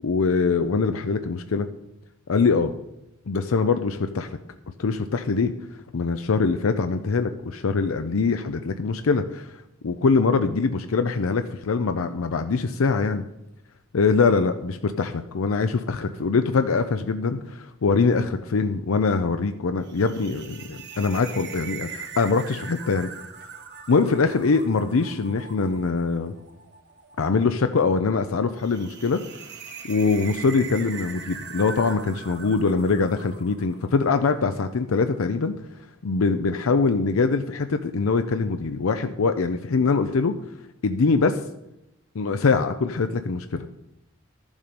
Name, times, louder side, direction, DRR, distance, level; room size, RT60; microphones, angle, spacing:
voice 1, 0.0-1.7 2.3-2.7 3.3-4.3 4.8-5.5 5.9-9.5 9.8-13.2 13.9-23.1 23.9-26.3 27.2-29.2 29.8-35.5 36.0-40.3 40.8-41.4 42.1-43.7, left 4 dB, 90° left, 8 dB, 0.6 m, -23 dB
sound 1, 19.8-34.2, right 6 dB, 55° right, 1.3 m, -41 dB
12.0 x 7.2 x 5.2 m, 0.89 s
head